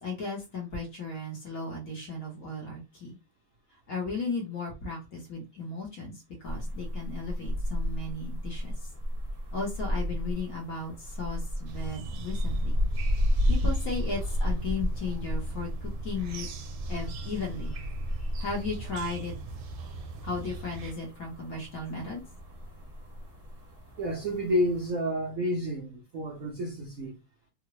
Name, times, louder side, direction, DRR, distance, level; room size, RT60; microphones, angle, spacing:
voice 1, 0.0-3.2 3.9-8.9 9.5-12.8 13.5-16.5 16.9-17.7 18.4-19.3 20.2-22.2, left 3 dB, 55° left, 1.2 m, -35 dB
sound 1, 6.4-24.9, equal, 10° right, 1.1 m, -33 dB
sound 2, 11.7-20.9, right 4 dB, 80° right, 1.5 m, -41 dB
voice 2, 24.0-27.2, equal, 65° right, 0.8 m, -30 dB
3.7 x 2.1 x 3.0 m
omnidirectional pair, 2.3 m